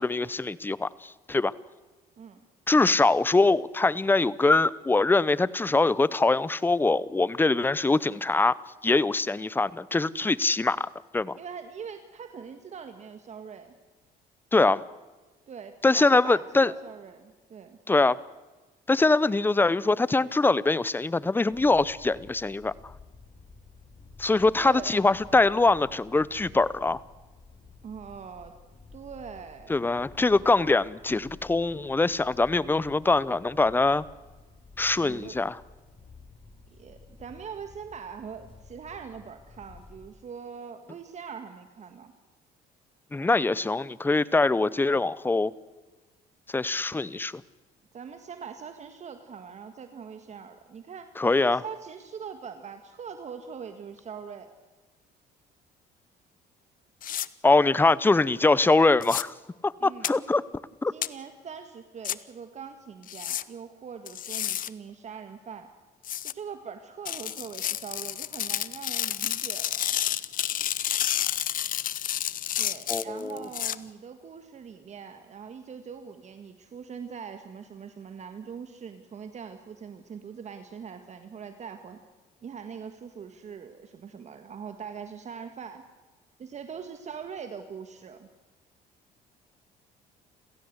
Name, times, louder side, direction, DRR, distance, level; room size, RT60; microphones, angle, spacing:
voice 1, 0.0-1.5 2.7-8.6 8.8-10.9 11.1-11.4 14.5-14.8 15.8-16.7 17.9-18.2 18.9-22.7 24.2-27.0 29.7-34.0 34.8-35.6 43.1-45.5 46.5-47.3 51.2-51.6 57.4-59.3 59.6-60.4 60.8-60.9 72.9-73.4, left 3 dB, 10° left, 20 dB, 0.7 m, -23 dB
voice 2, 11.4-13.7 15.5-17.8 24.6-24.9 27.8-28.5 28.9-29.7 35.0-35.4 36.8-42.1 47.9-51.1 51.4-54.5 59.8-60.1 60.9-65.7 66.3-69.8 72.6-82.0 82.4-85.8 86.4-88.3, right 6 dB, 45° right, 8 dB, 1.7 m, -42 dB
sound 1, 21.5-40.1, left 3 dB, 30° left, 7.9 m, -52 dB
sound 2, 57.0-57.3 59.0-59.2 60.0-60.1 61.0-61.1 62.0-62.2 63.1-63.4 64.1-64.7 66.0-66.3 67.1-73.8, left 11 dB, 55° left, 0.9 m, -30 dB
29.0 x 16.5 x 8.1 m, 1.2 s
cardioid pair, 110°, 17 cm